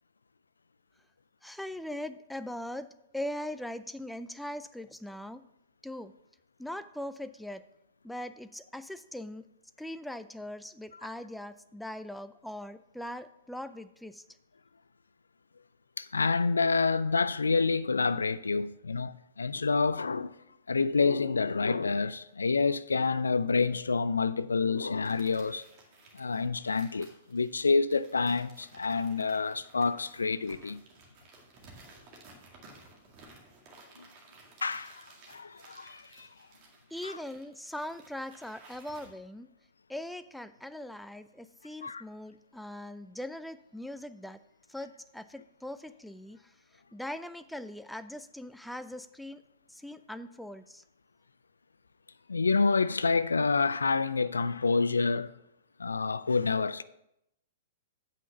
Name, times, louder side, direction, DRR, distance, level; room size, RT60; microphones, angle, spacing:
voice 1, 1.4-2.9 3.1-5.4 5.8-6.1 6.6-7.6 8.0-9.4 9.8-14.2 36.9-39.5 39.9-44.4 44.7-49.4 49.7-50.8, left 1 dB, ahead, 0.4 m, -41 dB
voice 2, 16.0-20.4 20.7-25.6 26.1-30.8 34.0-34.1 34.6-36.3 37.0-37.2 41.8-42.0 52.3-55.3 55.8-56.8, left 4 dB, 80° left, 0.3 m, -28 dB
sound 1, 25.0-39.1, right 3 dB, 40° right, 2.0 m, -56 dB
8.2 x 5.8 x 5.9 m
figure-of-eight pair, 110°, 0 cm